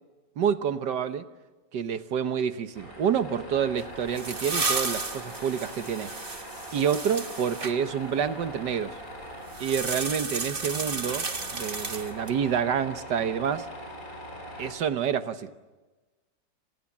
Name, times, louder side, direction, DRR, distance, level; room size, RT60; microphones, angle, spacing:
voice 1, 0.4-1.2 1.7-6.1 6.7-9.0 9.6-13.7 14.6-15.5, right 7 dB, 70° right, 10 dB, 1.7 m, -28 dB
Tools, 2.7-14.7, equal, 50° left, 6.0 m, -42 dB
sound 1, 3.8-7.7 9.5-12.4, right 3 dB, 30° right, 1.6 m, -33 dB
30.0 x 27.0 x 7.3 m, 1.2 s
omnidirectional pair, 1.9 m